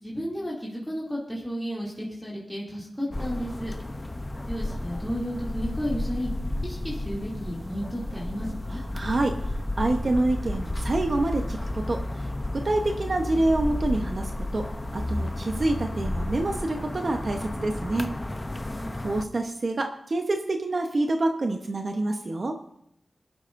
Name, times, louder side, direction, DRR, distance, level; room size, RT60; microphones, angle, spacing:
voice 1, 0.0-3.7 4.5-6.3 6.6-8.8 18.6-18.9, equal, ahead, -5 dB, 2.6 m, -33 dB
sound 1, 3.1-19.2, left 1 dB, 20° left, 0.7 m, -32 dB
voice 2, 8.9-9.4 9.8-12.3 12.5-14.7 14.9-18.1 19.0-22.6, right 2 dB, 50° right, 4 dB, 0.9 m, -27 dB
23.0 x 11.0 x 2.6 m, 0.77 s
wide cardioid pair, 105°, 0 cm